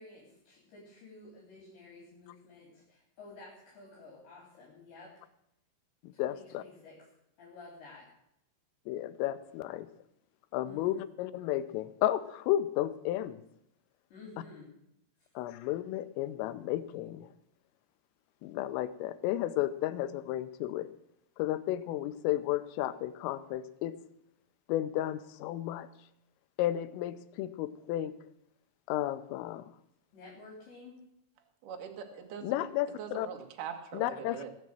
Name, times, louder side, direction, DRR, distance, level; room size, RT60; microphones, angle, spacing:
voice 1, 0.0-5.1 6.1-7.0 7.4-8.1 10.6-11.0 14.1-14.7 30.1-31.0, left 3 dB, 60° left, -3 dB, 5.8 m, -52 dB
voice 2, 6.2-6.6 8.9-9.9 10.5-13.4 15.4-17.3 18.4-20.9 21.4-24.0 24.7-25.9 26.6-28.2 28.9-29.7 32.4-33.3 33.9-34.4, left 13 dB, 85° left, 12 dB, 3.4 m, -33 dB
voice 3, 31.6-32.7 33.0-34.5, right 7 dB, 55° right, 3 dB, 2.5 m, -42 dB
21.5 x 7.6 x 7.6 m, 0.77 s
omnidirectional pair, 5.9 m